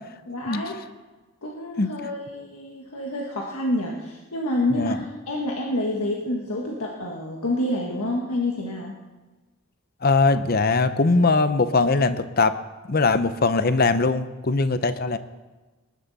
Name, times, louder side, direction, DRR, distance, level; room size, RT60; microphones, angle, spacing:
voice 1, 0.3-0.8 1.4-9.0, left 1 dB, 80° left, -1 dB, 1.5 m, -28 dB
voice 2, 10.0-12.6 12.9-15.2, left 3 dB, 45° left, 12 dB, 0.7 m, -21 dB
20.5 x 11.5 x 4.1 m, 1.2 s
head